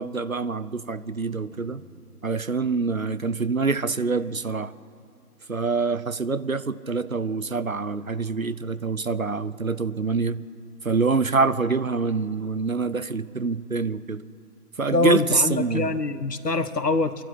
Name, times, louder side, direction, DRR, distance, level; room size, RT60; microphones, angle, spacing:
voice 1, 0.0-1.8 2.2-4.7 5.5-10.4 10.8-14.2 14.8-15.9, right 4 dB, 60° right, 0.8 m, -25 dB
sound 1, 1.5-3.7, equal, 25° left, 2.6 m, -53 dB
voice 2, 14.9-17.2, left 3 dB, 85° left, 1.5 m, -24 dB
25.5 x 12.0 x 9.9 m
figure-of-eight pair, 180°, 47 cm